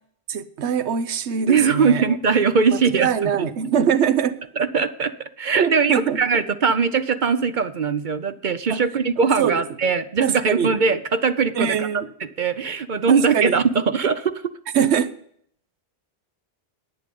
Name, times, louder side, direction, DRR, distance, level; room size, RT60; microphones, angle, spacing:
voice 1, 0.3-2.0 2.7-4.4 5.5-6.2 8.7-8.8 9.4-9.6 10.2-10.7 11.5-12.1 13.1-13.6 14.7-15.1, right 8 dB, 90° right, 1.1 m, -22 dB
voice 2, 1.5-3.5 4.6-11.9 12.2-14.4, right 5 dB, 50° right, 0.8 m, -21 dB
11.0 x 9.2 x 5.3 m
omnidirectional pair, 1.1 m